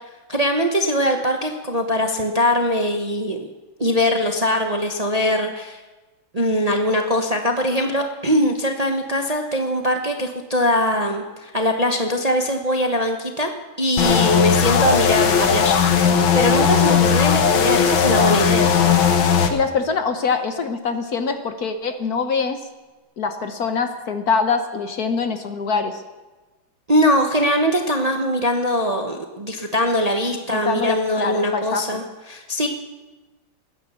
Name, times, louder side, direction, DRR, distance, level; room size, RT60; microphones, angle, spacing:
voice 1, 0.3-3.5 3.8-5.8 6.3-13.5 13.8-15.8 16.3-18.7 26.9-32.0 32.3-32.7, equal, 25° right, 4 dB, 0.9 m, -21 dB
sound 1, 14.0-19.5, left 7 dB, 75° left, 2.0 m, -17 dB
voice 2, 19.5-22.6 23.2-26.0 30.5-32.0, left 5 dB, 55° left, 8 dB, 1.4 m, -24 dB
20.0 x 10.0 x 7.1 m, 1.2 s
omnidirectional pair, 2.2 m